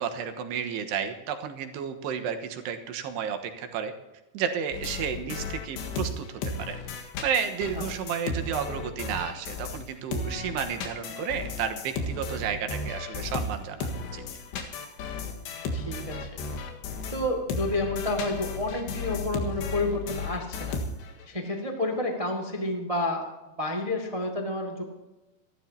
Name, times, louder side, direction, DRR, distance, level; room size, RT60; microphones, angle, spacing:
voice 1, 0.0-3.9 4.3-14.2, right 7 dB, 80° right, 5 dB, 3.3 m, -32 dB
sound 1, 4.7-9.9 10.1-21.3, left 3 dB, 90° left, 3.8 m, -34 dB
voice 2, 15.7-16.3 17.1-20.8 21.3-23.2 23.6-24.8, left 2 dB, 30° right, 1 dB, 0.6 m, -30 dB
28.0 x 12.5 x 2.9 m, 1.1 s
omnidirectional pair, 4.8 m